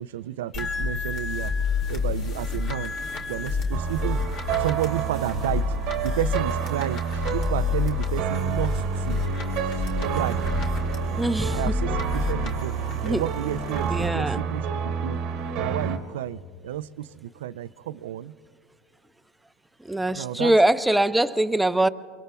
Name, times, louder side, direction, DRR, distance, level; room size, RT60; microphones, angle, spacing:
voice 1, 0.0-2.9 3.3-4.2 4.6-5.8 6.0-9.2 9.6-10.4 11.5-15.2 15.6-18.3 20.2-20.5, right 12 dB, 80° right, 14 dB, 0.3 m, -31 dB
sound 1, 0.5-14.1, left 4 dB, 55° left, 1.9 m, -29 dB
sound 2, 3.7-16.0, right 7 dB, 60° right, 1.0 m, -29 dB
voice 2, 11.2-11.7 13.0-13.2 13.9-14.4 19.8-21.9, right 1 dB, 5° right, 11 dB, 0.5 m, -22 dB
25.0 x 23.0 x 2.3 m, 2.2 s
hypercardioid pair, 95°, 0 cm